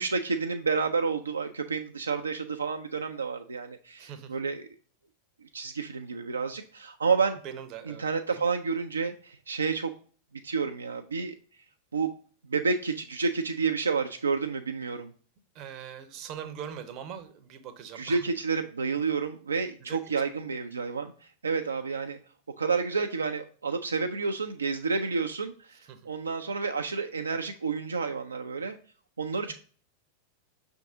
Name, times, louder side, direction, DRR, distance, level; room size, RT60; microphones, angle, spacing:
voice 1, 0.0-4.6 5.5-7.4 7.9-9.9 10.4-11.4 11.9-12.1 12.5-15.1 17.9-21.1 21.4-22.2 22.6-28.8 29.2-29.5, right 5 dB, 75° right, 5 dB, 0.3 m, -30 dB
voice 2, 4.0-4.3 7.4-8.4 15.5-18.3 19.8-20.0 25.9-26.1 29.5-29.6, right 8 dB, 40° right, 11 dB, 0.6 m, -42 dB
5.9 x 3.5 x 2.6 m, 0.42 s
figure-of-eight pair, 90°, 0 cm